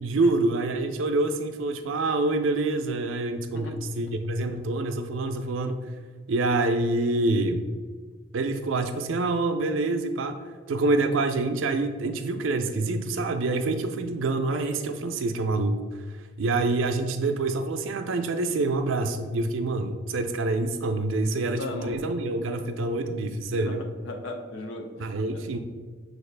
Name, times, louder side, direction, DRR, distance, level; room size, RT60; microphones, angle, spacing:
voice 1, 0.0-5.9 6.3-7.6 8.3-10.4 10.7-23.8 25.0-25.6, right 2 dB, 75° right, 7 dB, 0.4 m, -26 dB
voice 2, 21.3-22.0 23.6-25.5, left 2 dB, 70° left, 5 dB, 0.5 m, -38 dB
6.3 x 2.4 x 3.2 m, 1.5 s
head